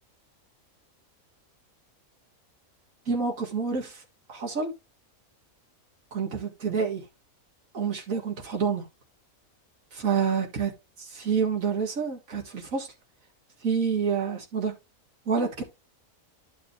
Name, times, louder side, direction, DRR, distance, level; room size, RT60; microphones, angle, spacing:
voice 1, 3.1-4.0 4.3-4.7 6.1-7.0 7.7-8.9 9.9-10.7 11.0-12.9 13.6-14.7 15.3-15.6, right 6 dB, 70° right, 2.3 m, -28 dB
11.0 x 4.9 x 3.2 m
omnidirectional pair, 1.5 m